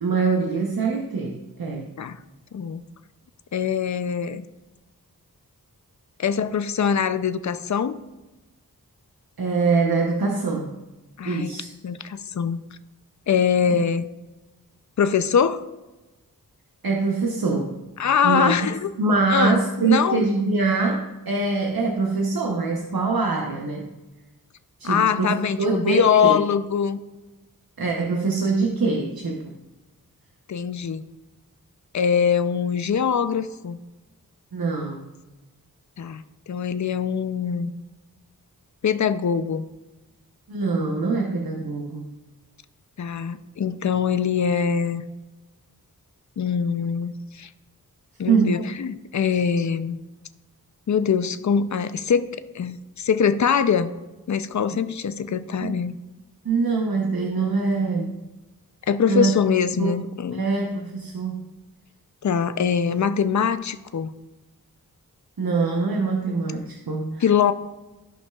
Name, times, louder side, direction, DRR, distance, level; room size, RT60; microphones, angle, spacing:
voice 1, 0.0-1.9 9.4-10.7 11.2-11.7 13.7-13.8 16.8-17.8 18.2-18.6 19.0-23.9 24.8-26.4 27.8-29.5 34.5-35.1 40.5-42.1 48.3-48.7 49.3-49.4 55.6-55.8 56.4-58.1 59.1-59.4 59.8-60.0 60.3-61.5 65.4-67.2, right 4 dB, 80° right, 1 dB, 0.9 m, -24 dB
voice 2, 2.5-2.8 3.5-4.4 6.2-8.0 11.2-11.5 11.8-12.6 13.3-14.1 15.0-15.6 18.0-18.9 19.3-20.3 24.8-27.0 30.5-31.0 31.9-33.8 36.0-37.7 38.8-39.6 43.0-45.1 46.4-47.5 48.2-50.0 50.9-53.9 54.3-55.9 58.9-60.4 62.2-64.1 67.2-67.5, left 7 dB, 55° left, 12 dB, 0.5 m, -23 dB
14.5 x 5.5 x 2.3 m, 1.1 s
wide cardioid pair, 55°, 35 cm